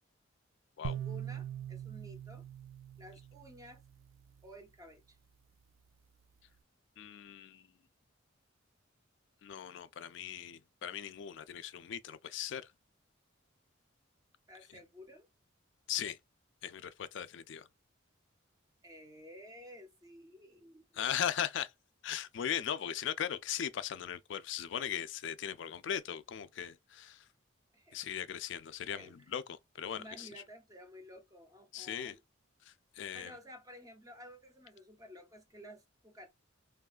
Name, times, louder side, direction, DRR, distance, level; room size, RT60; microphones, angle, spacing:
voice 1, 0.8-2.5 3.0-3.8 4.4-5.2 14.5-15.3 18.8-20.8 27.7-28.0 28.9-29.1 29.9-32.2 33.1-36.3, equal, 15° right, 0.5 m, -53 dB
sound 1, 0.8-4.1, right 9 dB, 80° right, 0.4 m, -42 dB
voice 2, 7.0-7.7 9.4-12.7 15.9-16.2 16.6-17.7 21.0-21.7 22.0-27.2 27.9-30.3 31.7-32.2 32.7-33.3, left 9 dB, 60° left, 0.3 m, -38 dB
3.5 x 2.3 x 2.3 m
head